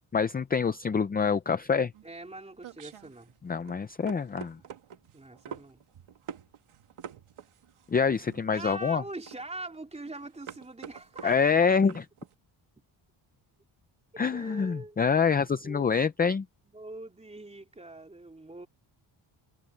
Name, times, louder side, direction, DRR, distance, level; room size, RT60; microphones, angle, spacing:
voice 1, 0.1-1.9 3.4-4.6 7.9-9.0 11.2-12.0 14.2-16.4, left 6 dB, 20° left, 0.4 m, -26 dB
sound 1, 1.9-12.3, right 8 dB, 75° right, 2.1 m, -47 dB
voice 2, 2.0-3.3 5.1-5.8 8.5-11.7 14.3-15.0 15.6-16.0 16.7-18.7, right 2 dB, 15° right, 3.3 m, -43 dB
wide cardioid pair, 175°, 50 cm